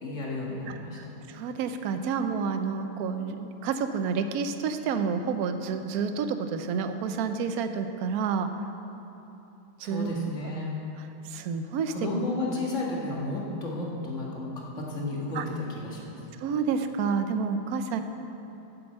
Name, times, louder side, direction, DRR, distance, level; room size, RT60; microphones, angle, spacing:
voice 1, 0.0-1.0 9.8-10.7 11.9-16.2, left 2 dB, 40° left, -3 dB, 1.9 m, -32 dB
voice 2, 0.7-8.5 9.8-10.1 11.3-11.9 15.3-15.4 16.4-18.0, right 6 dB, 70° right, 8 dB, 0.9 m, -29 dB
8.7 x 7.9 x 7.5 m, 3.0 s
omnidirectional pair, 2.1 m